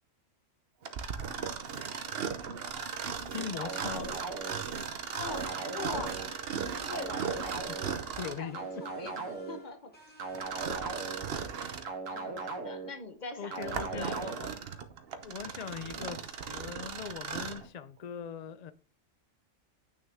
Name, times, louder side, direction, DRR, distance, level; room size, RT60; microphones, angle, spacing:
Mechanisms, 0.8-8.5 10.3-11.9 12.5-12.6 13.3-17.7, right 6 dB, 55° right, 0.9 m, -37 dB
voice 1, 2.7-4.2 6.7-6.8 8.2-8.6 13.4-14.1 15.2-18.7, left 7 dB, 75° left, 0.3 m, -41 dB
sound 1, 3.6-4.6 5.2-6.3 6.9-7.9 8.5-9.6 10.2-11.2 11.8-12.9 13.5-14.3, right 4 dB, 75° right, 1.7 m, -38 dB
sound 2, 4.8-10.7, right 2 dB, 5° left, 2.3 m, -55 dB
voice 2, 5.1-6.1 6.8-7.2 8.2-9.9 12.1-14.5, left 4 dB, 35° left, 1.1 m, -43 dB
8.8 x 6.3 x 3.5 m
omnidirectional pair, 1.4 m